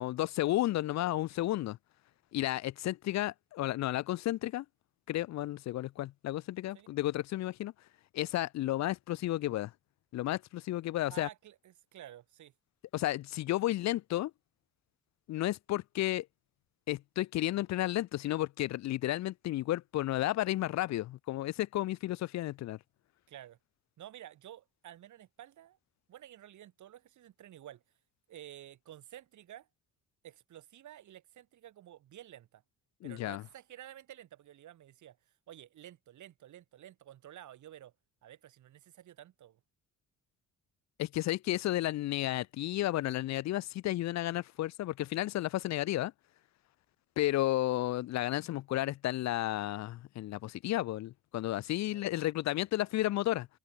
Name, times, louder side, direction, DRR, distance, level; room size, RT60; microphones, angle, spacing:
voice 1, 0.0-1.8 2.3-4.7 5.1-7.7 8.1-9.7 10.1-11.3 12.9-14.3 15.3-16.3 16.9-22.8 33.0-33.4 41.0-46.1 47.2-53.5, left 15 dB, 65° left, 0.5 m, -32 dB
voice 2, 11.1-12.5 23.3-23.6 24.0-25.8 26.1-27.8 28.3-29.7 30.2-32.6 33.0-37.9 38.2-39.6 51.9-52.0, right 12 dB, 75° right, 5.0 m, -51 dB
open air
cardioid pair, 90°, 30 cm